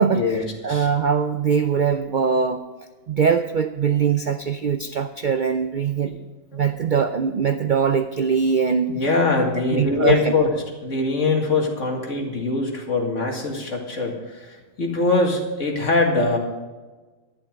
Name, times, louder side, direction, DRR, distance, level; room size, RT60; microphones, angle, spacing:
voice 1, 0.0-2.6 3.1-6.1 6.5-8.9 9.7-10.3, right 6 dB, 55° right, 8 dB, 0.5 m, -22 dB
voice 2, 8.9-10.5 10.8-16.4, left 3 dB, 65° left, 1 dB, 2.4 m, -22 dB
11.5 x 11.0 x 5.1 m, 1.3 s
omnidirectional pair, 1.4 m